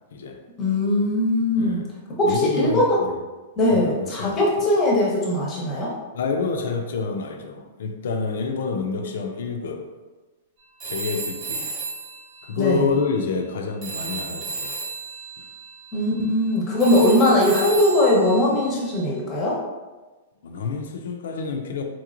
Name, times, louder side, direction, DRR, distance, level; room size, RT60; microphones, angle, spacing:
voice 1, 0.6-1.8 2.2-3.0 3.6-5.9 12.6-12.8 15.9-19.6, left 1 dB, 20° left, -3 dB, 0.9 m, -20 dB
voice 2, 2.2-3.2 3.7-4.4 6.1-9.9 10.8-11.7 12.4-14.8 15.4-15.5 20.4-21.8, left 5 dB, 75° left, 4 dB, 0.5 m, -28 dB
Telephone, 10.8-13.5 13.8-19.1, right 4 dB, 25° right, 0.8 m, -34 dB
3.9 x 3.0 x 2.5 m, 1.2 s
supercardioid pair, 165°, 0 cm